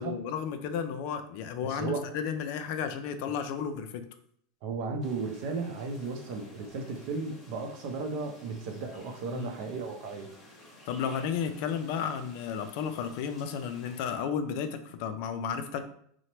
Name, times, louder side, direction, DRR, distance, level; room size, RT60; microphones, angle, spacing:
voice 1, 0.0-4.0 9.3-9.5 10.9-15.8, left 7 dB, 60° left, 8 dB, 0.3 m, -33 dB
voice 2, 1.6-2.1 4.6-10.3, right 4 dB, 60° right, 4 dB, 0.5 m, -35 dB
sound 1, 5.0-14.2, left 1 dB, 20° left, 0.9 m, -53 dB
2.8 x 2.1 x 3.0 m, 0.64 s
supercardioid pair, 125°, 0 cm